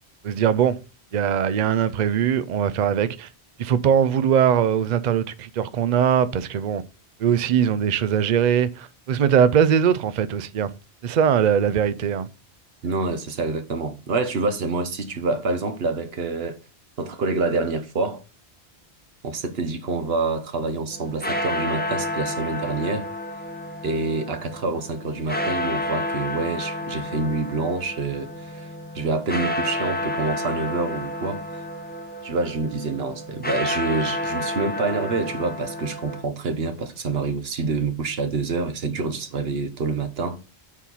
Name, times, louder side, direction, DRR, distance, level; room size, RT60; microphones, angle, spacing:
voice 1, 0.2-0.8 1.1-3.3 3.6-6.8 7.2-10.7 11.0-12.3, right 8 dB, 50° right, 0.6 m, -21 dB
voice 2, 12.8-16.6 17.0-18.2 19.2-23.1 23.8-28.7 28.9-31.6 32.2-40.4, right 3 dB, 65° right, 1.3 m, -27 dB
sound 1, 20.9-36.2, left 1 dB, 10° left, 0.9 m, -30 dB
7.1 x 4.3 x 5.5 m
omnidirectional pair, 1.1 m